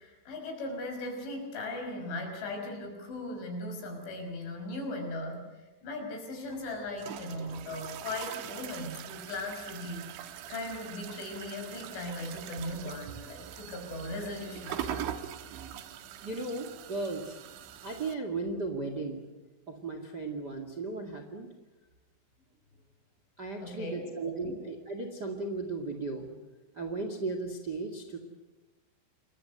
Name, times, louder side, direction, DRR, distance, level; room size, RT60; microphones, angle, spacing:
voice 1, 0.0-15.2 23.6-24.5, left 2 dB, 70° left, 3 dB, 8.0 m, -38 dB
sound 1, 6.4-18.1, right 10 dB, 75° right, 3.7 m, -42 dB
voice 2, 16.2-17.4 17.8-19.2 19.7-21.5 23.4-26.3 26.7-28.2, right 3 dB, 35° right, 6 dB, 1.6 m, -36 dB
28.5 x 22.5 x 8.1 m, 1.1 s
omnidirectional pair, 5.5 m